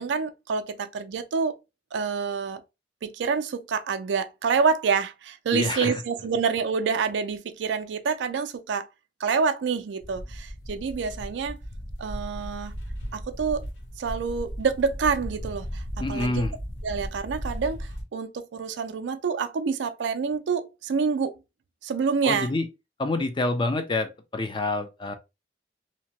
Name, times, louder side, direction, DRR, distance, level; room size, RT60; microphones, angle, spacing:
voice 1, 0.0-1.5 1.9-2.6 3.0-8.9 9.2-11.5 12.0-12.7 13.1-13.6 14.0-15.8 16.1-16.5 16.8-21.4 21.8-22.5, right 5 dB, 75° right, 0.4 m, -27 dB
voice 2, 5.5-6.0 16.0-16.6 22.2-22.7 23.0-25.1, left 2 dB, 25° left, 0.4 m, -27 dB
sound 1, 10.0-18.0, equal, 75° left, 0.8 m, -36 dB
2.8 x 2.2 x 2.8 m
head